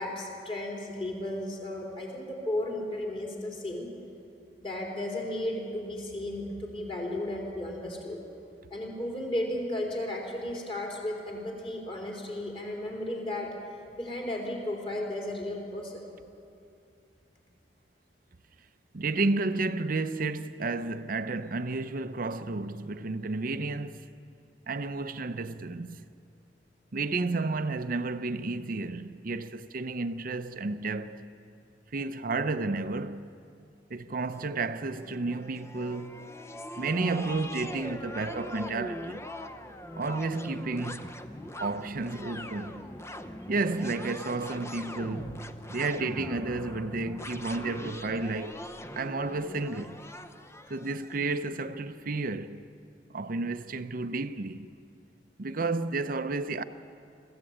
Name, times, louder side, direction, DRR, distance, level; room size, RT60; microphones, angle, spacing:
voice 1, 0.0-3.9 4.6-8.2 8.7-13.6 14.0-16.1, left 1 dB, 30° left, 3.8 m, -34 dB
voice 2, 18.9-24.1 24.7-26.0 26.9-31.3 31.9-33.3 33.9-36.3 36.8-39.3 40.0-41.2 41.6-42.9 43.5-48.6 49.0-50.0 50.7-52.7 53.1-54.7 55.4-56.6, right 3 dB, 50° right, 0.7 m, -32 dB
sound 1, 34.3-51.4, left 1 dB, 15° left, 0.7 m, -42 dB
21.0 x 15.0 x 8.7 m
head